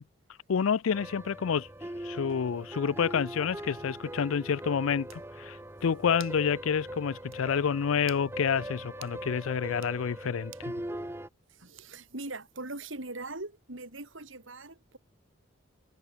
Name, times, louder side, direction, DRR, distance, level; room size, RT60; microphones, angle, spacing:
voice 1, 0.5-1.7 2.0-10.7, left 6 dB, 90° left, 0.4 m, -29 dB
sound 1, 0.9-11.3, right 1 dB, 10° right, 1.2 m, -41 dB
sound 2, 4.6-4.7 5.1-5.3 6.2-6.4 6.8-6.9 7.3-7.4 8.0-8.3 9.0-9.2 9.7-10.0 10.5-10.7 11.8-12.1, right 13 dB, 90° right, 1.9 m, -50 dB
voice 2, 11.5-15.0, right 2 dB, 75° right, 4.0 m, -41 dB
head